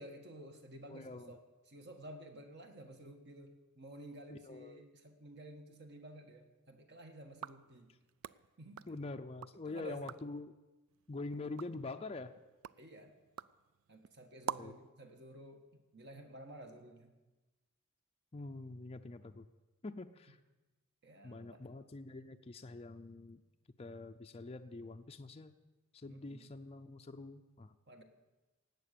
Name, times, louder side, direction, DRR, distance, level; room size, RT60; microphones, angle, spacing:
voice 1, 0.0-1.4 1.7-7.9 8.6-9.2 9.6-10.1 12.8-13.1 13.9-15.6 15.9-17.1 21.0-21.7 26.1-26.5 27.9-28.0, right 1 dB, 50° right, 5 dB, 1.5 m, -52 dB
voice 2, 0.9-1.4 4.3-4.9 8.9-10.5 11.1-12.3 14.6-14.7 18.3-19.5 19.8-20.4 21.2-23.4 23.8-25.5 25.9-27.7, left 3 dB, 30° left, 6 dB, 0.5 m, -45 dB
sound 1, 7.3-9.6 9.9-10.4 10.9-14.9, right 9 dB, 70° right, 0.3 m, -48 dB
18.5 x 8.3 x 6.8 m, 1.1 s
head